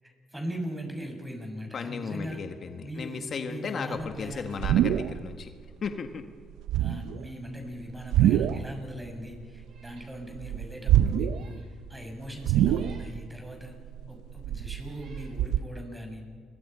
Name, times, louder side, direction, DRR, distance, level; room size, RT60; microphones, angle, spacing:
voice 1, 0.0-2.4 2.8-4.8 6.8-11.6 11.9-13.8 14.1-16.2, equal, 10° right, 3 dB, 6.6 m, -39 dB
voice 2, 1.7-5.5 5.8-6.3 6.9-7.2, left 5 dB, 55° left, 6 dB, 1.6 m, -35 dB
sound 1, 4.0-5.4 5.7-6.1 6.6-7.3 8.0-8.7 9.1-10.0 10.3-11.6 11.9-12.0 12.4-13.3 13.7-15.6, right 11 dB, 90° right, 0.6 m, -25 dB
Meow, 9.6-10.1 10.6-10.7 11.2-11.7 12.7-13.2 14.1-14.2 14.8-15.4, right 4 dB, 65° right, 6.0 m, -58 dB
29.5 x 23.5 x 5.7 m, 2.1 s
cardioid pair, 90°, 0 cm